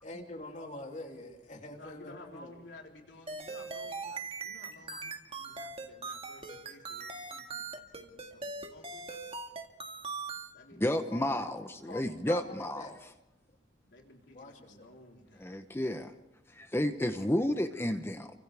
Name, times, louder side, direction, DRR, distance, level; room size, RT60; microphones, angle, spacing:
voice 1, 0.0-2.5 4.9-5.0 10.8-11.5 11.9-13.0 14.3-14.9, left 2 dB, 45° left, 2 dB, 2.9 m, -45 dB
voice 2, 1.7-9.3 10.5-12.3 13.9-15.5, left 2 dB, 80° left, 0 dB, 3.8 m, -55 dB
sound 1, 3.3-10.5, right 4 dB, 30° right, 1.9 m, -40 dB
voice 3, 10.8-13.1 15.4-16.1 16.5-18.3, left 1 dB, 15° left, 8 dB, 0.9 m, -32 dB
30.0 x 25.0 x 3.5 m, 0.91 s
head